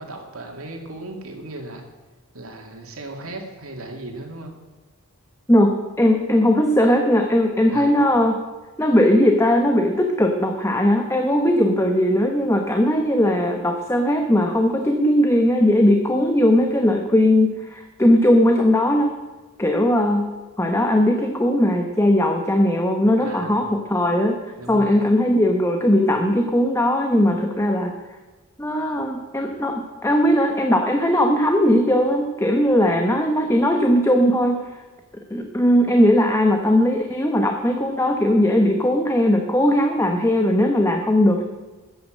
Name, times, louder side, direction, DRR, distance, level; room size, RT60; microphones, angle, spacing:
voice 1, 0.0-1.8 2.3-4.6 7.7-7.9 23.2-23.6 24.6-25.0, right 2 dB, 80° right, 2 dB, 2.5 m, -36 dB
voice 2, 5.5-8.4 8.8-19.1 19.6-24.4 24.7-27.9 28.6-34.7 35.3-41.4, left 1 dB, 15° left, 4 dB, 0.9 m, -19 dB
14.0 x 9.4 x 6.4 m, 1.2 s
head